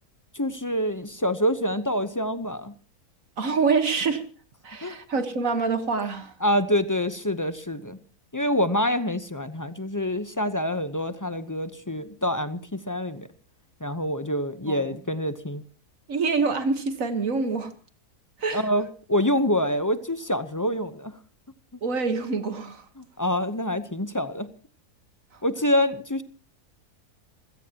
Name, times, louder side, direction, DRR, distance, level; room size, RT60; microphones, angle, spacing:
voice 1, 0.3-2.7 4.8-5.0 6.4-8.0 8.3-13.3 13.8-15.6 18.5-21.1 23.0-24.5 25.4-26.2, left 1 dB, 20° left, 0.5 m, -26 dB
voice 2, 3.4-4.2 4.6-6.3 14.7-14.8 16.1-17.7 18.4-18.7 21.8-22.8, right 4 dB, 60° right, 1.7 m, -26 dB
27.5 x 16.5 x 2.9 m
omnidirectional pair, 1.6 m